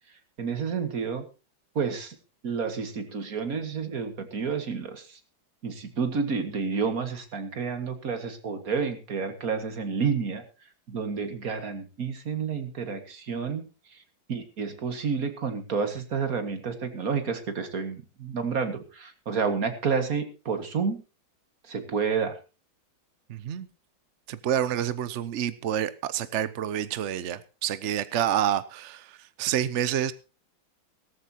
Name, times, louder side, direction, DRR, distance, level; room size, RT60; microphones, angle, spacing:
voice 1, 0.4-1.3 1.8-2.2 2.4-5.2 5.6-10.4 10.9-14.0 14.3-21.0 21.6-22.3, right 5 dB, 45° right, 2.2 m, -30 dB
voice 2, 23.3-23.7 24.3-30.1, right 10 dB, 70° right, 0.6 m, -28 dB
17.5 x 14.0 x 2.9 m
omnidirectional pair, 2.2 m